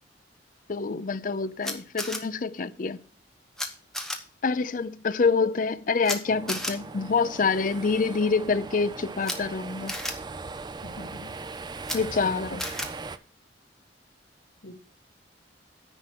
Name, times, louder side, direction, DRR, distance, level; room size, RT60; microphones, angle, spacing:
voice 1, 0.7-3.0 4.4-9.9 11.9-12.6, left 4 dB, 45° left, 0.5 m, -26 dB
Camera, 1.6-2.2 3.6-3.7 3.9-4.2 6.0-6.2 6.5-6.7 9.2-9.4 9.9-10.1 11.8-12.0 12.6-12.9, left 1 dB, 5° left, 1.0 m, -31 dB
sound 1, 6.2-13.2, right 3 dB, 25° right, 0.4 m, -39 dB
voice 2, 10.8-11.3 12.2-12.6 14.6-14.7, left 1 dB, 80° left, 1.4 m, -42 dB
9.9 x 4.4 x 7.5 m
head